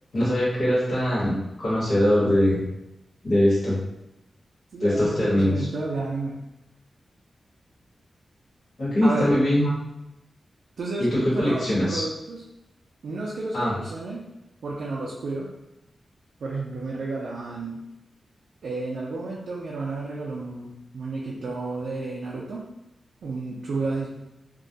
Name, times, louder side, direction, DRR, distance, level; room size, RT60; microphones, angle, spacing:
voice 1, 0.1-2.6 3.2-3.8 4.8-5.7 8.8-9.7 11.0-12.0 13.5-13.7, left 1 dB, 60° left, -9 dB, 1.0 m, -22 dB
voice 2, 4.7-6.4 9.0-9.3 10.8-12.4 13.0-14.2 14.6-15.5 16.4-17.8 18.6-22.7 23.2-24.1, right 3 dB, 80° right, -4 dB, 0.4 m, -31 dB
2.3 x 2.1 x 2.6 m, 0.92 s
wide cardioid pair, 160°, 0 cm